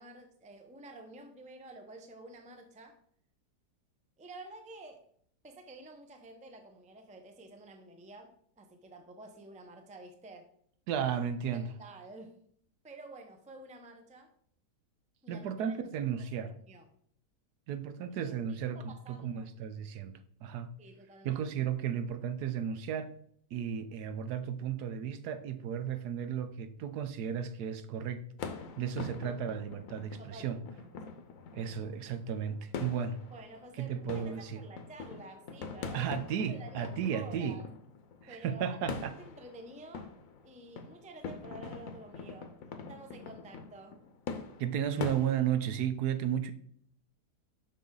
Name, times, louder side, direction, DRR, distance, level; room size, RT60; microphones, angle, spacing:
voice 1, 0.0-3.0 4.2-5.0 5.4-10.5 11.5-12.4 12.8-14.3 15.2-16.9 18.3-19.5 20.8-21.5 30.2-30.6 31.0-31.1 33.3-36.1 36.5-37.7 38.3-40.1 40.4-42.5 42.9-44.0, right 2 dB, 10° right, 0.4 m, -50 dB
voice 2, 10.9-11.7 15.3-16.5 17.7-20.7 21.2-23.1 23.5-28.2 28.8-30.6 31.5-33.2 33.8-34.6 35.9-37.6 38.2-39.2 44.6-46.5, right 8 dB, 75° right, 1.2 m, -34 dB
sound 1, 28.4-45.8, left 5 dB, 60° left, 1.1 m, -44 dB
7.0 x 5.7 x 3.8 m
omnidirectional pair, 1.7 m